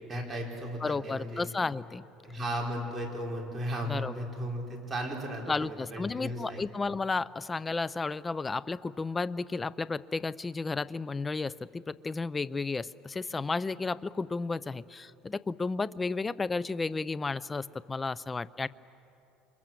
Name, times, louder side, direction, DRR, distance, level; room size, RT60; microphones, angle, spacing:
voice 1, 0.1-1.5 2.2-6.6, equal, 20° right, -1 dB, 5.0 m, -35 dB
voice 2, 0.8-2.0 3.9-4.2 5.5-18.7, left 4 dB, 20° left, 18 dB, 0.5 m, -33 dB
28.5 x 25.0 x 7.6 m, 2.9 s
cardioid pair, 120°, 0 cm